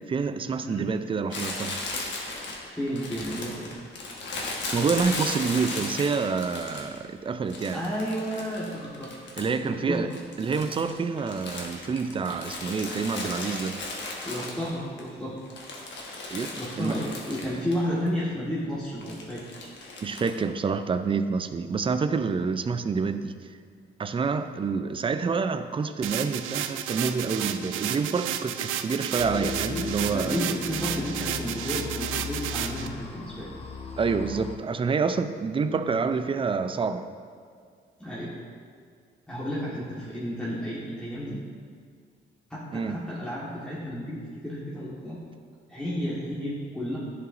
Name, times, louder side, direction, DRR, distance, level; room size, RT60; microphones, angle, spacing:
voice 1, 0.1-1.8 4.7-7.8 9.4-10.1 10.4-13.8 16.3-16.5 16.8-17.0 20.0-23.3 24.0-30.4 34.0-37.1 42.7-43.0, right 5 dB, 25° right, 10 dB, 0.4 m, -27 dB
Crumpling crinkling, 1.3-7.0 7.5-9.7 9.9-15.0 15.4-17.8 18.1-18.2 19.0-20.4, left 2 dB, 65° left, 1.3 m, -36 dB
voice 2, 2.7-3.7 7.7-9.1 9.6-10.0 14.2-15.4 16.5-19.7 30.1-33.5 38.0-38.3 39.3-41.4 42.5-45.2 45.7-47.0, equal, 5° left, -9 dB, 1.4 m, -32 dB
sound 1, 26.0-32.9, right 10 dB, 85° right, 0.4 m, -32 dB
sound 2, 29.2-34.6, left 4 dB, 30° left, 0.8 m, -37 dB
11.0 x 4.8 x 2.6 m, 2.1 s
cardioid pair, 90°, 20 cm